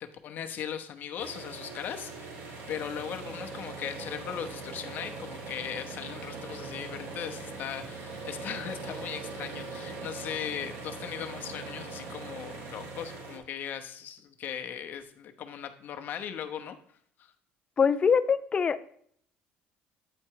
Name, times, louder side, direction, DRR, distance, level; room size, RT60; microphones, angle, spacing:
voice 1, 0.0-2.3 2.7-16.8 17.2-17.3, left 9 dB, 45° left, 6 dB, 0.8 m, -38 dB
sound 1, 1.2-13.4, right 3 dB, 60° right, 1.8 m, -41 dB
voice 2, 17.8-18.8, left 6 dB, 25° left, 12 dB, 0.4 m, -23 dB
8.7 x 4.4 x 4.7 m, 0.64 s
cardioid pair, 140°, 4 cm